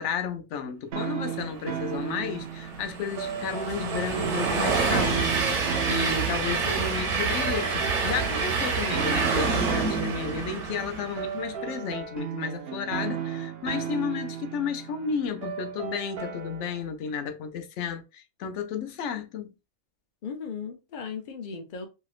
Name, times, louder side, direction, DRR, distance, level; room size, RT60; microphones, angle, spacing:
voice 1, 0.0-5.4 5.9-19.5, left 6 dB, 80° left, 0.9 m, -32 dB
sound 1, 0.9-16.8, right 8 dB, 60° right, 0.8 m, -35 dB
Train, 2.0-11.4, right 4 dB, 85° right, 1.2 m, -28 dB
voice 2, 20.2-21.9, left 6 dB, 50° left, 0.6 m, -37 dB
3.1 x 2.7 x 2.4 m
omnidirectional pair, 1.2 m